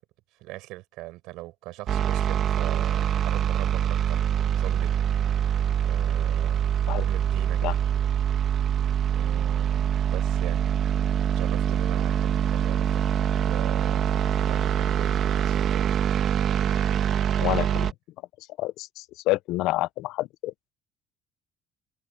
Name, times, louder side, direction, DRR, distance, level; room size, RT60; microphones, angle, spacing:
voice 1, 0.4-4.2 4.6-4.9 5.8-6.7 7.0-7.6 9.1-10.6 11.3-13.0 13.4-15.9, right 19 dB, 80° right, 7.3 m, -41 dB
sound 1, 1.9-17.9, right 9 dB, 40° right, 1.4 m, -24 dB
voice 2, 17.4-17.9 18.6-20.5, left 17 dB, 70° left, 0.5 m, -28 dB
cardioid pair, 165°, 0 cm